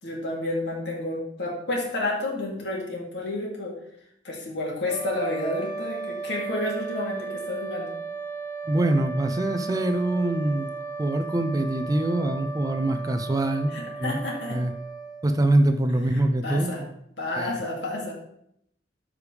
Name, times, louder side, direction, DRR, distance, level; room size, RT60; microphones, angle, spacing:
voice 1, 0.0-3.7 4.2-7.9 13.7-14.6 16.1-16.8 17.2-18.1, left 1 dB, 65° left, -2 dB, 2.5 m, -30 dB
sound 1, 4.8-15.7, right 4 dB, 20° left, 3.8 m, -36 dB
voice 2, 8.7-10.7 11.0-14.2 14.5-14.7 15.2-16.9 17.4-17.6, right 1 dB, 20° right, 8 dB, 0.5 m, -24 dB
13.0 x 4.9 x 3.3 m, 0.74 s
head